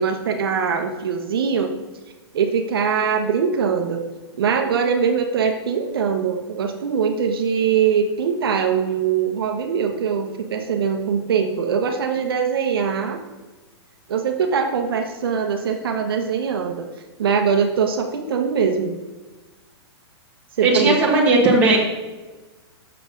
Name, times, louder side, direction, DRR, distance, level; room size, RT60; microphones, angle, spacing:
voice 1, 0.0-1.8 2.3-4.0 4.3-13.2 14.1-16.8 17.2-19.0 20.6-21.0, right 6 dB, 55° right, 4 dB, 0.8 m, -22 dB
voice 2, 20.6-21.8, right 2 dB, 10° right, -4 dB, 1.2 m, -16 dB
7.0 x 6.7 x 3.8 m, 1.2 s
hypercardioid pair, 180°, 14 cm